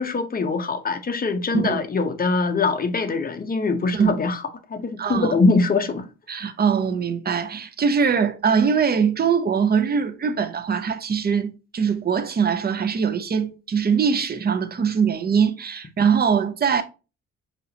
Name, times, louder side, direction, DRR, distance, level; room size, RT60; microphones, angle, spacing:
voice 1, 0.0-4.4 4.7-6.1, left 3 dB, 30° left, 0.8 m, -23 dB
voice 2, 5.0-5.3 6.3-16.8, right 6 dB, 30° right, 0.6 m, -22 dB
5.4 x 2.9 x 2.8 m
cardioid pair, 90°, 30 cm